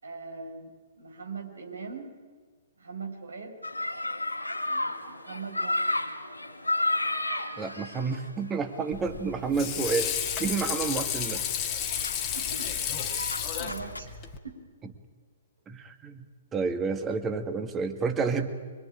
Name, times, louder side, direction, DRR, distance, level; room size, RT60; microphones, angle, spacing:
voice 1, 0.0-2.2 2.8-3.6 4.6-6.1 12.3-14.6, right 4 dB, 70° right, 3 dB, 5.3 m, -42 dB
sound 1, 3.6-14.0, left 2 dB, 85° left, 2.5 m, -34 dB
voice 2, 7.6-10.1 10.4-11.4 15.7-16.2 16.5-18.5, right 5 dB, 15° right, 6 dB, 2.0 m, -30 dB
Water / Sink (filling or washing), 8.9-14.4, left 9 dB, 25° left, 2.0 m, -32 dB
24.5 x 24.0 x 8.9 m, 1.5 s
figure-of-eight pair, 120°, 0 cm